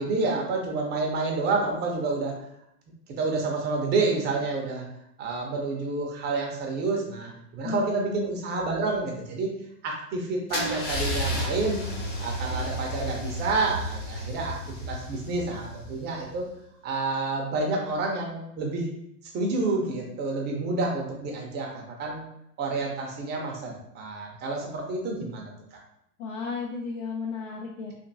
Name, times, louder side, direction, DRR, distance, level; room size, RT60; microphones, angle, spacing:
voice 1, 0.0-2.3 3.2-4.8 5.2-9.5 9.8-11.8 12.2-16.5 16.8-18.9 19.3-22.3 22.6-25.8, right 3 dB, 20° right, 0 dB, 0.7 m, -29 dB
voice 2, 7.6-8.3 26.2-27.9, left 5 dB, 60° left, -2 dB, 0.7 m, -34 dB
Car / Engine starting / Idling, 10.5-16.3, equal, 20° left, 0.4 m, -32 dB
3.4 x 2.6 x 2.6 m, 0.75 s
hypercardioid pair, 105°, 46 cm